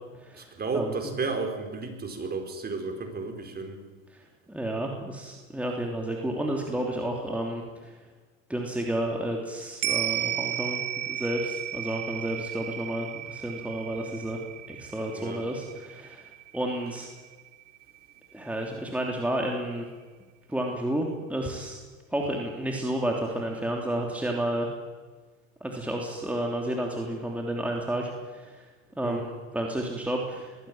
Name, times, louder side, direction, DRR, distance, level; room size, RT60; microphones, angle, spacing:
voice 1, 0.3-3.8 15.1-15.4 29.0-29.2, right 4 dB, 25° right, 5 dB, 4.6 m, -33 dB
voice 2, 4.5-7.9 8.5-10.8 11.1-14.4 14.7-17.1 18.3-19.8 20.5-21.8 22.1-24.7 25.6-28.6 29.0-30.5, right 1 dB, 5° right, 0 dB, 3.2 m, -31 dB
sound 1, 9.8-18.4 18.7-18.8, right 12 dB, 45° right, 2.2 m, -34 dB
21.5 x 16.5 x 9.0 m, 1.4 s
hypercardioid pair, 100°, 40 cm